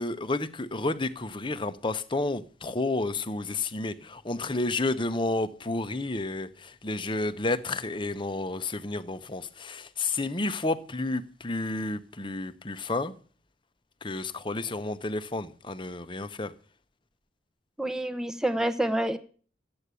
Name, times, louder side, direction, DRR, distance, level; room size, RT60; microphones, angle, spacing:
voice 1, 0.0-13.1 14.0-16.5, left 2 dB, 25° left, 0.9 m, -31 dB
voice 2, 17.8-19.2, right 1 dB, 5° right, 0.9 m, -27 dB
14.0 x 8.9 x 8.3 m
head